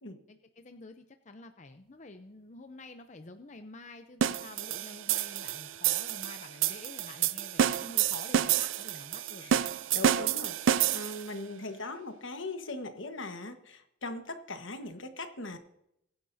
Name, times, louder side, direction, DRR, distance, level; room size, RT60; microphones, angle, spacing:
voice 1, 0.3-9.6, left 2 dB, 35° left, 8 dB, 0.6 m, -49 dB
sound 1, 4.2-11.3, right 9 dB, 75° right, 0.4 m, -29 dB
voice 2, 9.9-15.6, left 2 dB, 75° left, 7 dB, 1.4 m, -40 dB
23.0 x 10.5 x 2.7 m, 0.79 s
head